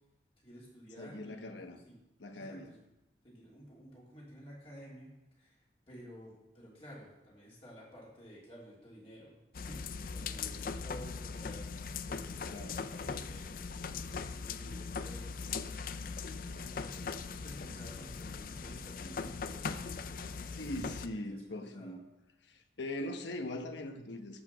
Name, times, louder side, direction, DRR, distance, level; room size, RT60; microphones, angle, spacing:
voice 1, 0.4-2.0 2.3-2.8 3.2-5.5 5.9-11.7 12.1-15.5 16.4-19.9 20.2-22.0, equal, 35° left, -6 dB, 3.1 m, -53 dB
voice 2, 1.0-1.8 2.2-2.7 12.5-12.9 20.6-22.0 22.4-24.4, left 1 dB, 85° left, 6 dB, 1.1 m, -41 dB
sound 1, 9.5-21.1, left 5 dB, 50° left, 0.4 m, -40 dB
14.0 x 5.0 x 6.0 m, 0.95 s
head